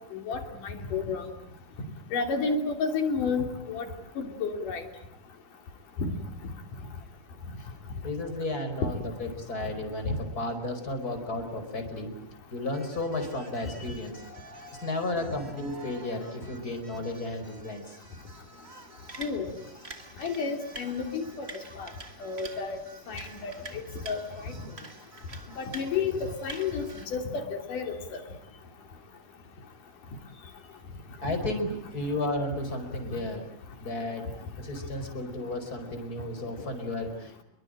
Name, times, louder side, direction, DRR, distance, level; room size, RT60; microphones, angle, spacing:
voice 1, 0.1-1.3 2.1-3.9 4.2-4.8 6.0-6.1 10.1-10.2 19.2-19.5 20.2-21.5 21.8-21.9 22.2-22.8 23.1-24.5 25.6-28.2, left 5 dB, 75° left, 5 dB, 4.7 m, -31 dB
voice 2, 8.0-12.1 12.5-14.2 14.5-18.0 31.2-33.5 33.8-34.3 34.6-37.4, left 2 dB, 25° left, 6 dB, 5.3 m, -33 dB
sound 1, 12.7-27.1, right 3 dB, 25° right, 1.7 m, -48 dB
28.0 x 23.0 x 9.0 m, 0.74 s
omnidirectional pair, 3.8 m